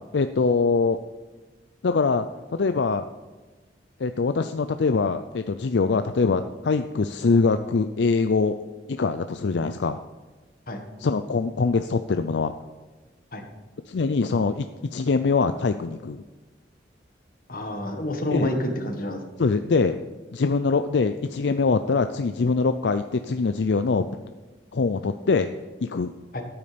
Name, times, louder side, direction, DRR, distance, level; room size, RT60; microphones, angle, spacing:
voice 1, 0.1-1.0 1.8-3.0 4.0-8.6 8.9-10.0 11.0-12.5 13.9-16.2 18.3-18.5 19.4-20.0 20.3-24.1 24.7-25.5 25.8-26.1, left 4 dB, 75° left, 9 dB, 0.5 m, -23 dB
voice 2, 17.5-19.2 26.3-26.4, left 1 dB, 50° left, 5 dB, 1.6 m, -28 dB
13.5 x 8.8 x 5.1 m, 1.2 s
head